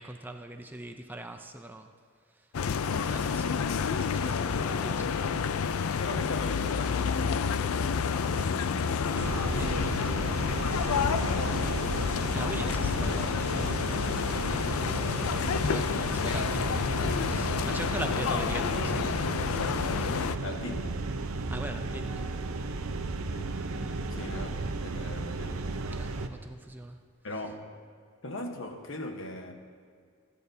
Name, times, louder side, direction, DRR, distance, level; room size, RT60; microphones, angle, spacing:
voice 1, 0.0-1.9 2.3-2.7 3.1-5.1 9.5-10.2 12.3-19.3 20.0-20.3 21.5-22.3 23.7-24.1 25.9-27.0, right 1 dB, 10° right, 5 dB, 0.5 m, -42 dB
sound 1, 2.5-20.4, left 6 dB, 90° left, 0.4 m, -29 dB
voice 2, 4.4-5.2 6.0-10.4 10.9-11.9 20.4-21.0 23.3-23.6 24.1-25.7 27.2-27.8 28.2-29.5, left 1 dB, 65° left, 4 dB, 1.2 m, -40 dB
sound 2, 9.1-26.3, right 3 dB, 85° right, 0.7 m, -34 dB
27.0 x 10.0 x 2.8 m, 2.1 s
head